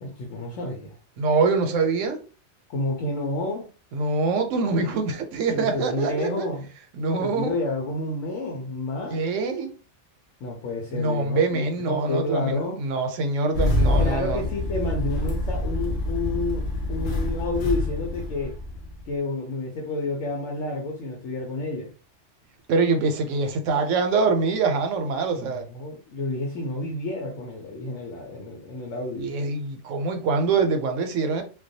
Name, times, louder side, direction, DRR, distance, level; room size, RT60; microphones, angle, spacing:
voice 1, 0.0-1.0 2.7-3.7 5.5-6.7 7.2-9.2 10.4-12.8 14.0-18.5 19.1-21.9 25.3-29.3, left 2 dB, 85° left, 1.0 m, -30 dB
voice 2, 1.2-2.2 3.9-6.5 6.9-7.5 9.1-9.8 10.9-14.4 22.7-25.7 29.2-31.4, right 4 dB, 90° right, 0.9 m, -24 dB
Engine starting, 13.5-19.1, left 2 dB, 55° left, 0.6 m, -26 dB
2.2 x 2.2 x 2.6 m
omnidirectional pair, 1.3 m